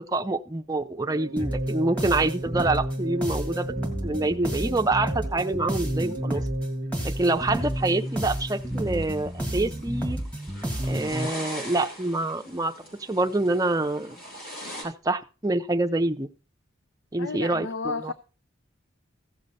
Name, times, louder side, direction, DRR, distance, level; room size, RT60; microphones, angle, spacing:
voice 1, 0.0-3.7 4.0-6.4 7.0-10.2 10.9-12.7 13.1-14.2 14.8-16.3 17.1-18.1, right 2 dB, 20° right, 0.6 m, -26 dB
sound 1, 0.7-8.0, right 3 dB, 80° right, 0.6 m, -40 dB
sound 2, 1.4-11.3, right 1 dB, 5° left, 1.7 m, -30 dB
sound 3, 7.1-14.8, equal, 50° left, 5.6 m, -42 dB
voice 2, 17.2-18.1, left 4 dB, 70° left, 0.6 m, -32 dB
15.5 x 6.6 x 4.1 m
head